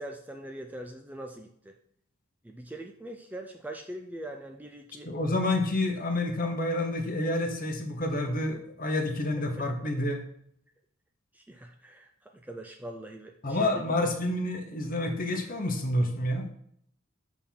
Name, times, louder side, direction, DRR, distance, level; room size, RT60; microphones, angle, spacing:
voice 1, 0.0-1.7 2.4-5.1 11.3-13.8, right 1 dB, 5° right, 3 dB, 0.4 m, -42 dB
voice 2, 5.0-10.2 13.4-16.5, left 1 dB, 40° left, 4 dB, 1.0 m, -29 dB
6.6 x 3.6 x 5.8 m, 0.67 s
head